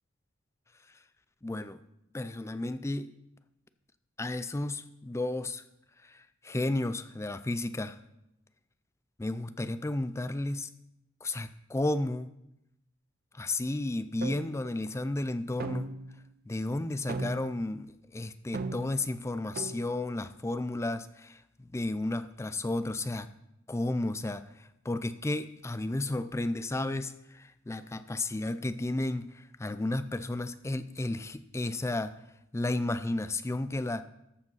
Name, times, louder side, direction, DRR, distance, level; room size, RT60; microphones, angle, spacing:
voice 1, 1.4-1.8 2.1-3.1 4.2-5.6 6.0-8.0 9.2-10.7 11.2-12.3 13.3-15.9 16.5-23.3 23.7-32.1 32.5-34.0, left 2 dB, 15° left, 12 dB, 0.4 m, -33 dB
sound 1, 14.2-14.6 15.6-16.2 17.1-17.6 18.5-19.0 19.6-19.9, right 3 dB, 45° right, 0.6 m, -36 dB
14.0 x 5.0 x 5.5 m, 0.85 s
head